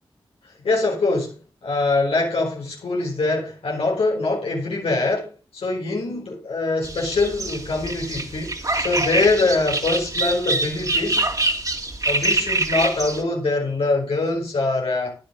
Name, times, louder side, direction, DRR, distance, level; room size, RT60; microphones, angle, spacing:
voice 1, 0.6-11.3 12.0-15.2, left 3 dB, 90° left, 4.7 m, -23 dB
sound 1, 6.8-13.2, right 2 dB, 40° right, 3.1 m, -25 dB
14.5 x 10.0 x 4.0 m
cardioid pair, 45°, 10 cm